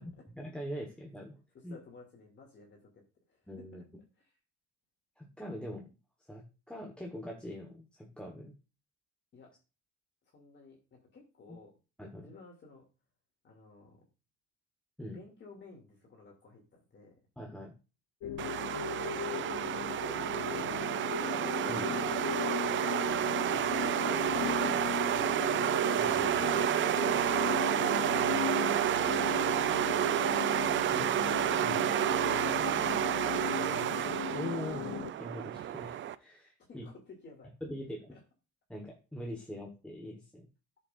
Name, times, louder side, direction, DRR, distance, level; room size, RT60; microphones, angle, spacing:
voice 1, 0.4-1.8 3.5-3.8 5.2-5.8 6.3-8.5 11.5-11.6 12.0-12.3 15.0-15.2 17.4-17.7 21.7-21.9 26.0-26.7 30.9-31.1 31.6-31.9 33.7-36.8 37.6-38.1 38.7-40.5, left 1 dB, 5° left, -1 dB, 1.4 m, -43 dB
voice 2, 1.5-3.0 3.3-3.5 4.2-4.3 5.6-5.7 9.3-9.5 10.3-11.7 12.2-12.8 13.4-14.0 15.1-17.1 18.2-18.6 18.9-19.5 20.0-21.4 36.7-37.5 38.1-38.2, left 3 dB, 40° left, -1 dB, 2.6 m, -55 dB
sound 1, 18.2-35.1, left 9 dB, 70° left, 0.8 m, -37 dB
sound 2, 18.4-36.1, right 11 dB, 40° right, 0.5 m, -30 dB
13.0 x 6.8 x 2.6 m, 0.31 s
cardioid pair, 150°, 29 cm